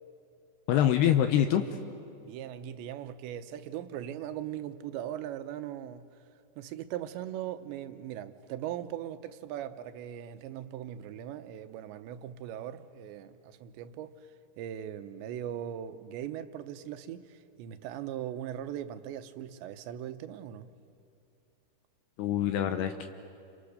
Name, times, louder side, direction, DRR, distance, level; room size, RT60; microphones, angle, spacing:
voice 1, 0.7-1.6 22.2-23.1, left 10 dB, 75° left, 2.8 m, -25 dB
voice 2, 2.2-6.2 6.6-14.3 14.6-20.8, right 11 dB, 85° right, 3.2 m, -39 dB
30.0 x 28.0 x 6.7 m
omnidirectional pair, 5.0 m